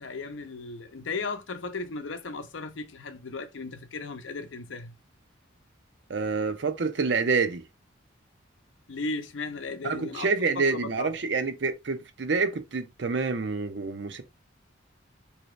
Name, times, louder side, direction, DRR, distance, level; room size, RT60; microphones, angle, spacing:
voice 1, 0.0-4.9 8.9-11.1, left 3 dB, 75° left, 0.6 m, -36 dB
voice 2, 6.1-7.6 9.8-14.2, right 4 dB, 60° right, 0.6 m, -27 dB
3.8 x 2.8 x 3.1 m
head